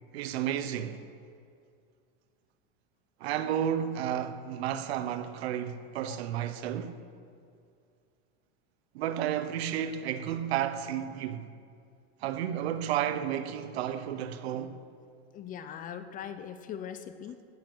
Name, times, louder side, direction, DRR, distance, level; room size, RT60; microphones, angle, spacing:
voice 1, 0.1-1.0 3.2-7.0 8.9-11.5 12.2-14.8, right 10 dB, 90° right, 1.1 m, -32 dB
voice 2, 15.3-17.4, left 8 dB, 25° left, 0.6 m, -41 dB
16.0 x 9.8 x 6.1 m
supercardioid pair, 155°, 31 cm